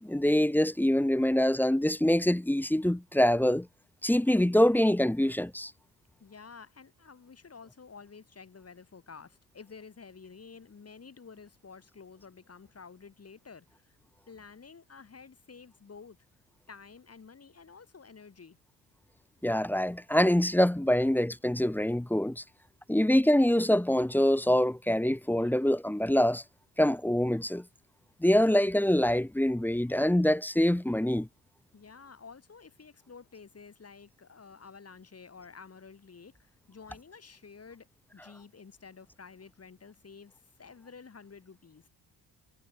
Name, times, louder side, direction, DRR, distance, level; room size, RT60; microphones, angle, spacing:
voice 1, 0.0-3.7 4.0-5.7 19.4-22.4 22.9-26.4 26.8-27.6 28.2-31.3, left 1 dB, 5° left, 0.8 m, -25 dB
voice 2, 6.2-14.0 14.3-16.2 16.7-18.6 31.7-37.9 38.1-41.9, left 5 dB, 35° left, 5.8 m, -51 dB
cardioid pair, 90°, 43 cm